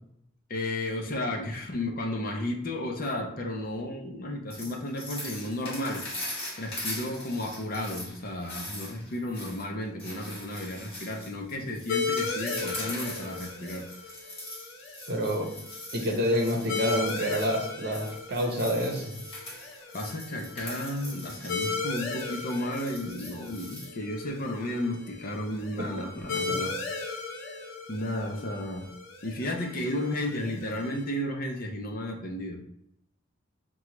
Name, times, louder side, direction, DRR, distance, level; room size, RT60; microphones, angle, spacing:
voice 1, 0.5-6.0 6.6-13.9 19.9-26.7 27.9-28.9 29.2-32.6, left 1 dB, 45° left, 2 dB, 0.6 m, -33 dB
sound 1, 4.5-23.9, left 1 dB, 30° left, 1.7 m, -41 dB
sound 2, 11.9-31.0, left 4 dB, 85° left, 0.8 m, -37 dB
voice 2, 15.1-15.5 15.9-19.1 25.8-25.9 26.5-26.6, equal, 55° right, 1 dB, 0.8 m, -28 dB
6.0 x 2.3 x 3.0 m, 0.74 s
head